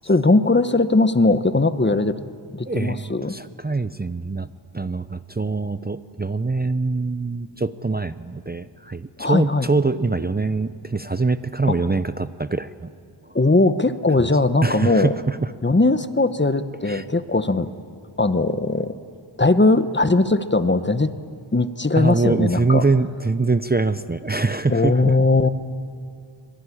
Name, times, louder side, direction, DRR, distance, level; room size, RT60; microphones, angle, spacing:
voice 1, 0.0-2.2 2.5-3.3 9.2-9.7 11.7-11.8 13.3-15.1 15.6-17.7 18.2-18.9 19.4-21.1 21.5-22.8 24.7-25.5, left 2 dB, 20° left, 11 dB, 1.1 m, -19 dB
voice 2, 2.6-4.5 4.7-12.9 13.3-13.4 14.2-14.3 14.6-15.5 16.8-17.0 21.9-25.2, right 3 dB, 20° right, 12 dB, 0.6 m, -24 dB
25.0 x 23.0 x 10.0 m, 2.3 s
wide cardioid pair, 95°, 48 cm